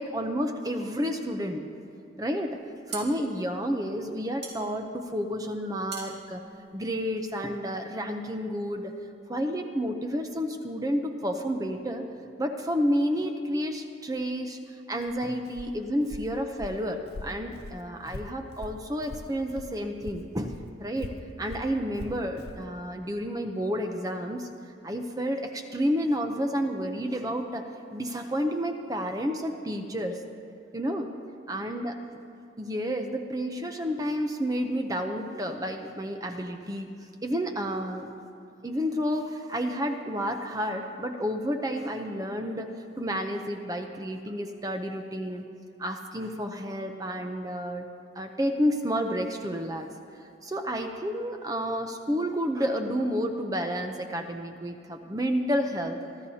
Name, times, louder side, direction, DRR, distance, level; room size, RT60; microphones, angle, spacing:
voice 1, 0.0-1.7 2.2-2.6 2.9-6.4 6.7-8.9 9.3-12.0 12.4-14.6 14.9-21.1 21.4-24.5 24.8-30.2 30.7-31.1 31.5-31.9 32.6-36.9 37.2-38.1 38.6-45.4 45.8-47.9 48.1-49.9 50.2-56.0, equal, 20° right, 5 dB, 0.6 m, -30 dB
sound 1, 2.5-7.5, right 4 dB, 65° right, 2.5 m, -43 dB
Walk footsteps, 15.0-19.8 20.0-22.7, left 2 dB, 60° left, 0.6 m, -42 dB
25.0 x 13.0 x 2.8 m, 2.4 s
head